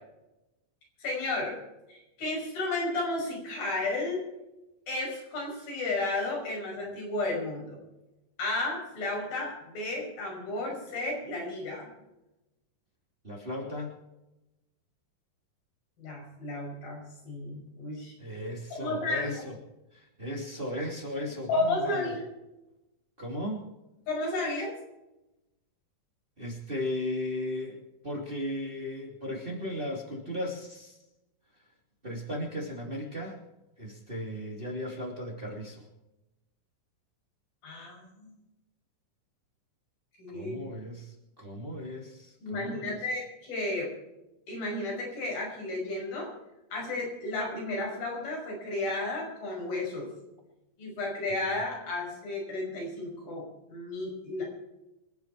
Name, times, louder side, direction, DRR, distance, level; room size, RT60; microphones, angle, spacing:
voice 1, 1.0-1.6 1.9-4.2 4.9-7.8 8.4-11.9 16.0-18.1 18.8-19.4 21.5-22.3 24.1-24.7 37.6-38.3 40.2-40.6 42.4-43.9 44.5-46.3 46.7-50.1 50.8-54.5, left 2 dB, 90° left, -2 dB, 7.6 m, -33 dB
voice 2, 13.2-13.9 18.2-19.6 19.9-22.1 23.2-23.6 26.4-27.8 28.0-31.0 32.0-33.4 33.8-35.8 40.3-43.0, left 1 dB, 15° right, 0 dB, 2.5 m, -36 dB
26.5 x 9.4 x 4.7 m, 0.96 s
omnidirectional pair, 4.1 m